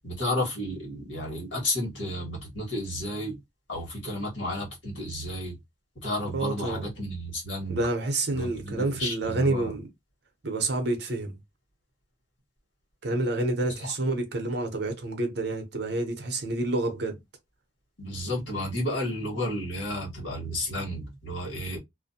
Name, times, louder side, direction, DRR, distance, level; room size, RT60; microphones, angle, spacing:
voice 1, 0.0-3.4 3.7-5.6 6.0-7.8 8.3-9.7 13.7-13.9 18.0-21.8, left 1 dB, 75° left, 1.3 m, -32 dB
voice 2, 6.3-6.9 7.7-9.9 10.4-11.4 13.0-17.2, right 2 dB, 55° right, 0.7 m, -28 dB
2.5 x 2.1 x 2.6 m
head